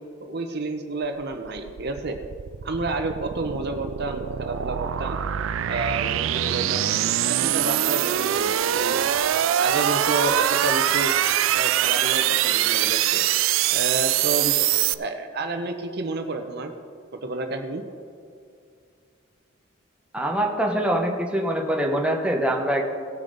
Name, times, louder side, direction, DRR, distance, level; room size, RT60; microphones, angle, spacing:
voice 1, 0.2-2.2 2.6-5.2 5.6-6.9 7.2-9.0 9.6-11.1 11.5-13.2 13.7-14.5 15.0-16.7 17.2-17.8, right 3 dB, 55° right, 6 dB, 0.9 m, -30 dB
sound 1, 1.3-14.9, right 11 dB, 80° right, 0.4 m, -23 dB
voice 2, 20.1-22.9, right 1 dB, 5° right, 1 dB, 1.0 m, -24 dB
18.0 x 6.8 x 4.0 m, 2.3 s
head